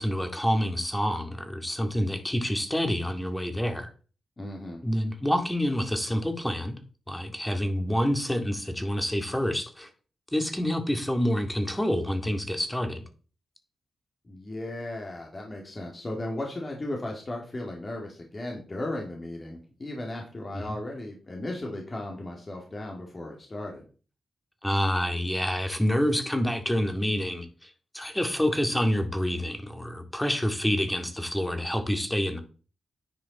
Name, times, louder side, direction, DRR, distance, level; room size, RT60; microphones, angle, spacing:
voice 1, 0.0-3.9 4.8-6.8 7.1-9.9 10.3-13.0 20.5-20.6 24.6-32.4, equal, 10° left, 2.2 m, -27 dB
voice 2, 4.4-4.8 14.2-23.8, left 1 dB, 40° left, 2.5 m, -36 dB
10.5 x 4.9 x 4.2 m
supercardioid pair, 40°, 0 cm